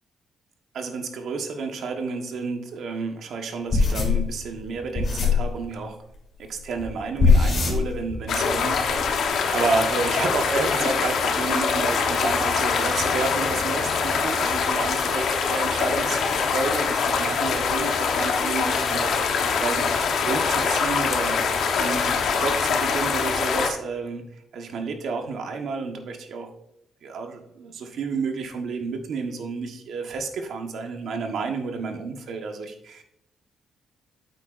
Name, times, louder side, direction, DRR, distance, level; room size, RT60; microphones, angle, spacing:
voice 1, 0.7-6.0 6.4-19.1 19.6-19.9 20.2-21.4 21.8-24.2 24.5-26.5 27.0-33.0, right 4 dB, 70° right, 4 dB, 1.3 m, -30 dB
sound 1, 3.7-5.5 6.8-6.9 7.2-8.3 8.5-9.0, left 4 dB, 45° left, 3.3 m, -21 dB
sound 2, 8.3-23.7, left 5 dB, 70° left, 1.1 m, -24 dB
8.7 x 8.2 x 2.6 m, 0.79 s
cardioid pair, 125°, 0 cm